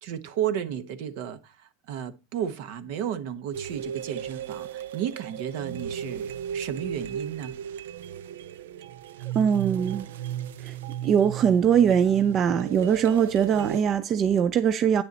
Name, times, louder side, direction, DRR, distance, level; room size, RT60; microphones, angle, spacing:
voice 1, 0.0-7.6, right 9 dB, 60° right, 1.2 m, -33 dB
sound 1, 3.5-13.8, right 9 dB, 85° right, 0.5 m, -36 dB
voice 2, 9.3-10.1 10.6-10.8 11.0-15.0, right 8 dB, 35° right, 0.5 m, -22 dB
9.2 x 7.0 x 4.1 m
supercardioid pair, 130°, 0 cm